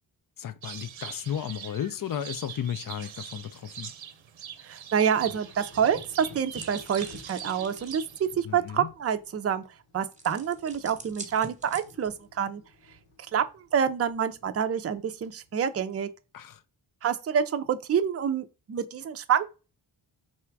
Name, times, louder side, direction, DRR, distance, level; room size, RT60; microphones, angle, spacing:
voice 1, 0.4-3.9 8.4-8.9 16.3-16.6, left 9 dB, 50° left, 0.5 m, -34 dB
sound 1, 0.6-8.3, right 8 dB, 85° right, 0.7 m, -43 dB
voice 2, 4.6-9.6 9.9-12.6 13.3-16.1 17.0-19.5, right 8 dB, 35° right, 0.4 m, -27 dB
sound 2, 5.1-15.7, left 3 dB, 80° left, 1.3 m, -53 dB
sound 3, 6.5-8.1 10.1-12.2, right 3 dB, 15° right, 1.0 m, -46 dB
4.2 x 2.4 x 4.5 m
cardioid pair, 80°, 45 cm